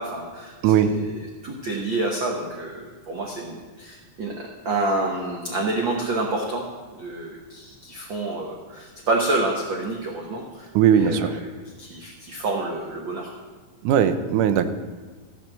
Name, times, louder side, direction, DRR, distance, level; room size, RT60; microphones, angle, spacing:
voice 1, 0.0-6.7 6.9-11.4 11.8-13.3, right 2 dB, 55° right, 0 dB, 1.4 m, -28 dB
voice 2, 0.6-1.0 10.8-11.3 13.8-14.7, right 8 dB, 85° right, 10 dB, 2.3 m, -19 dB
14.0 x 5.8 x 7.4 m, 1.4 s
omnidirectional pair, 3.5 m